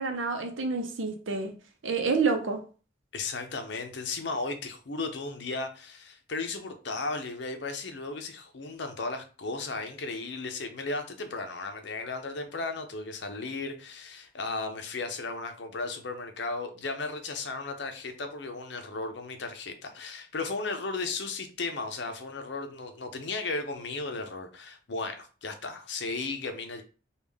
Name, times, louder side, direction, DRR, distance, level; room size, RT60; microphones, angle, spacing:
voice 1, 0.0-1.5 1.8-2.6, right 4 dB, 85° right, 0.7 m, -28 dB
voice 2, 3.1-26.8, left 3 dB, 65° left, 0.6 m, -35 dB
3.5 x 2.3 x 3.4 m
head